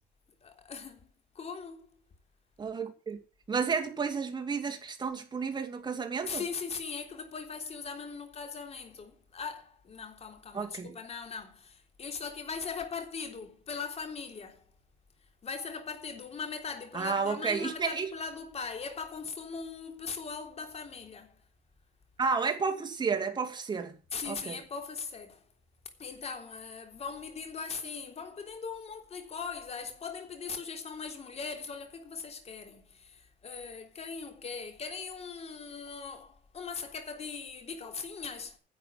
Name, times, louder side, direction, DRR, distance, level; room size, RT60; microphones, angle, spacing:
voice 1, 0.4-1.1 1.3-1.9 6.2-14.7 15.4-21.4 24.1-25.4 26.0-38.6, left 5 dB, 40° left, 3.5 m, -40 dB
voice 2, 2.6-3.2 3.5-6.4 10.5-11.0 16.9-18.1 22.2-24.0 24.3-24.6, right 5 dB, 25° right, 2.5 m, -31 dB
11.0 x 7.9 x 7.4 m
cardioid pair, 110°, 17 cm